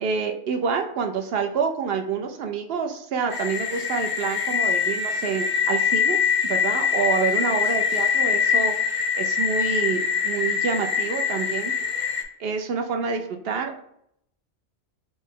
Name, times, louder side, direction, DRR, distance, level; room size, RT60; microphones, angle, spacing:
voice 1, 0.0-6.2 6.4-11.7 12.4-13.8, right 5 dB, 65° right, 5 dB, 0.8 m, -27 dB
sound 1, 3.3-12.2, left 7 dB, 40° left, 0.5 m, -24 dB
6.0 x 2.1 x 3.6 m, 0.72 s
omnidirectional pair, 1.2 m